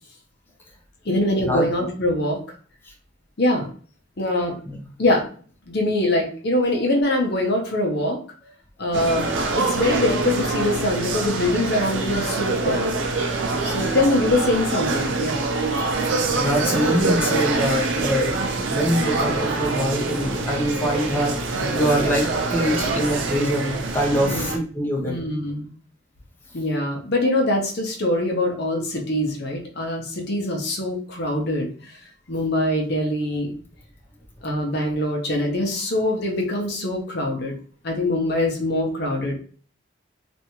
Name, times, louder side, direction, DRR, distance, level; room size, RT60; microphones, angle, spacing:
voice 1, 1.0-2.4 3.4-3.7 4.2-4.6 5.0-5.2 5.7-8.2 8.8-12.9 13.6-15.4 24.3-24.5 25.0-25.7 26.5-32.0 32.3-33.5 34.4-37.5 37.8-39.4, left 1 dB, 55° left, 1 dB, 0.8 m, -23 dB
sound 1, 8.9-24.6, right 3 dB, 70° right, 0.5 m, -25 dB
voice 2, 16.4-25.2, equal, 10° left, -2 dB, 0.8 m, -24 dB
3.3 x 2.6 x 3.0 m, 0.43 s
head